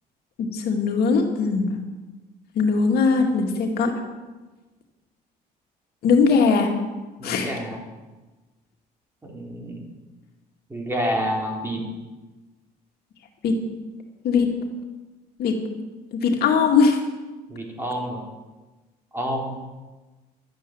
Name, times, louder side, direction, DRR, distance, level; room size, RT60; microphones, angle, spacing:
voice 1, 0.4-1.7 2.5-3.9 6.0-6.7 7.2-7.6 13.4-13.6 14.2-14.5 15.4-15.6 16.1-17.0, left 5 dB, 70° left, 2 dB, 2.2 m, -20 dB
voice 2, 7.2-7.8 9.2-9.8 10.7-11.8 17.5-18.2 19.1-19.6, equal, 15° right, -1 dB, 3.7 m, -28 dB
12.5 x 8.2 x 9.2 m, 1.2 s
cardioid pair, 110°, 17 cm